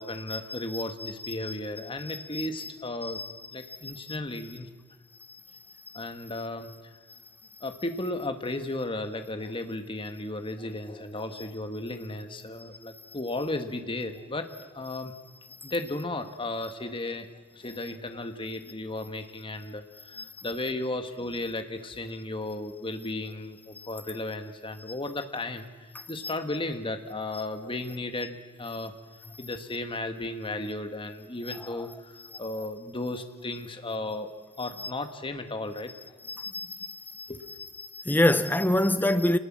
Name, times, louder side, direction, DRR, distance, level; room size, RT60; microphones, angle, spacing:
voice 1, 0.0-3.2 3.5-4.7 5.9-6.9 7.6-14.5 14.7-15.1 15.6-17.3 17.5-28.9 29.4-34.3 34.6-35.9 37.3-37.4, left 2 dB, 25° left, 1.5 m, -35 dB
voice 2, 36.3-37.3 37.9-39.4, left 1 dB, 10° left, 0.8 m, -25 dB
26.0 x 19.5 x 7.4 m
head